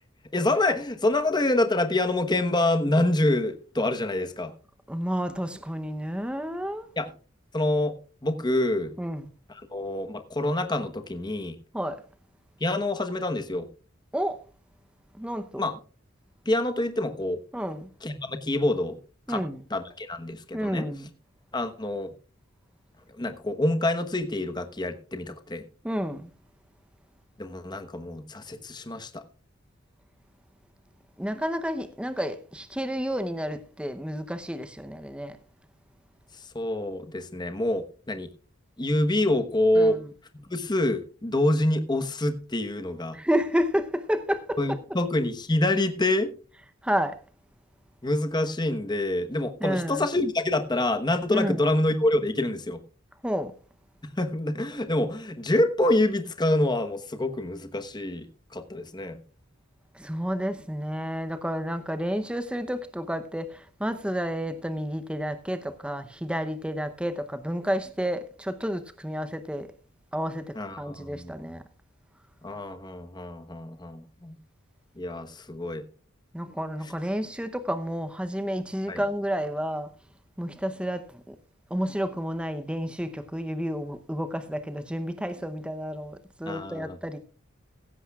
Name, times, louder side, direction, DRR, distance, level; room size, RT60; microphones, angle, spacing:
voice 1, 0.3-4.5 7.0-7.1 7.5-8.9 9.5-11.6 12.6-13.7 15.6-15.8 16.5-17.4 18.0-19.0 19.3-19.4 19.7-20.9 21.5-22.1 23.1-25.6 27.4-29.2 36.4-38.3 38.8-40.0 40.3-43.2 44.6-46.3 48.0-52.8 54.2-59.2 70.5-71.5 72.4-74.4 75.0-75.8 78.9-79.0 86.5-87.0, left 1 dB, 20° left, 1.1 m, -26 dB
voice 2, 4.9-6.9 9.0-9.2 11.7-12.0 14.1-14.4 15.2-15.6 17.5-17.9 19.3-19.6 20.5-21.1 25.8-26.3 31.2-35.4 39.8-40.0 43.1-44.6 46.8-47.2 49.6-50.1 51.3-51.6 53.2-53.5 59.9-69.7 70.1-71.6 76.3-79.9 80.4-81.3 81.7-87.2, equal, 5° right, 0.7 m, -30 dB
16.0 x 14.5 x 2.4 m
head